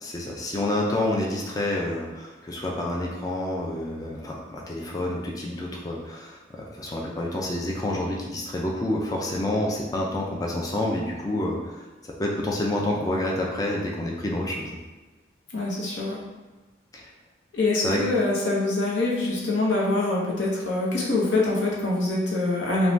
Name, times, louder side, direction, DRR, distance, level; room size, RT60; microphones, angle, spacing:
voice 1, 0.0-11.8 12.1-14.7 16.9-17.1 17.8-18.0, left 1 dB, 20° left, -2 dB, 0.3 m, -28 dB
voice 2, 15.5-16.2 17.5-22.9, left 2 dB, 80° left, -4 dB, 0.7 m, -24 dB
3.2 x 2.2 x 2.6 m, 1.2 s
head